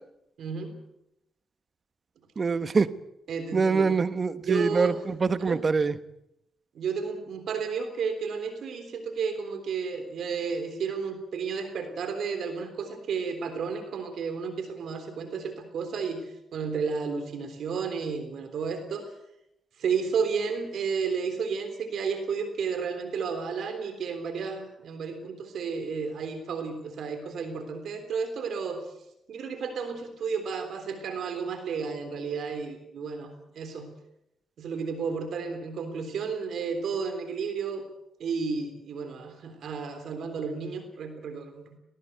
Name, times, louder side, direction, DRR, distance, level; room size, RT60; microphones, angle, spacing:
voice 1, 0.4-0.8 3.3-3.9 4.4-5.0 5.4-5.6 6.8-19.1 19.8-28.8 29.3-33.9 34.6-37.8 38.2-41.8, right 5 dB, 70° right, 8 dB, 3.4 m, -32 dB
voice 2, 2.4-2.9 3.5-5.9, right 4 dB, 45° right, 14 dB, 1.3 m, -24 dB
19.5 x 19.5 x 8.0 m, 0.82 s
supercardioid pair, 55°, 0 cm